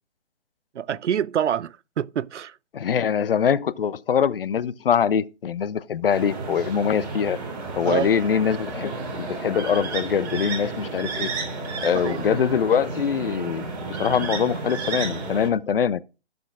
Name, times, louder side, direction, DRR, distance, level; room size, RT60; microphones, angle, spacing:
voice 1, 0.7-2.6 7.8-8.1 11.9-12.2, right 9 dB, 85° right, 0.5 m, -26 dB
voice 2, 2.7-7.4 7.8-11.3 11.8-13.7 14.0-16.0, left 7 dB, 55° left, 0.6 m, -23 dB
sound 1, 6.1-15.5, right 4 dB, 35° right, 3.0 m, -32 dB
16.0 x 6.3 x 2.4 m
hypercardioid pair, 160°, 34 cm